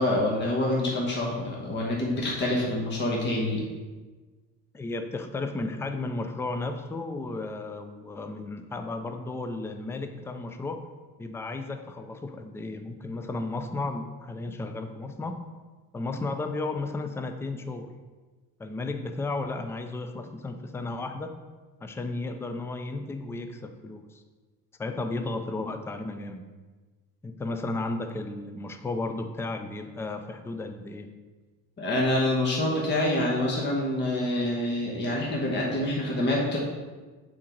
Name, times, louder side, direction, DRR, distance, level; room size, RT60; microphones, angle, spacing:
voice 1, 0.0-3.6 31.8-36.6, left 1 dB, 30° left, -3 dB, 1.2 m, -26 dB
voice 2, 4.7-10.8 11.2-15.4 15.9-17.9 18.6-21.3 21.8-24.2 24.8-26.4 27.2-31.1, left 2 dB, 10° left, 7 dB, 0.4 m, -34 dB
7.6 x 3.8 x 4.5 m, 1.3 s
cardioid pair, 125°, 35 cm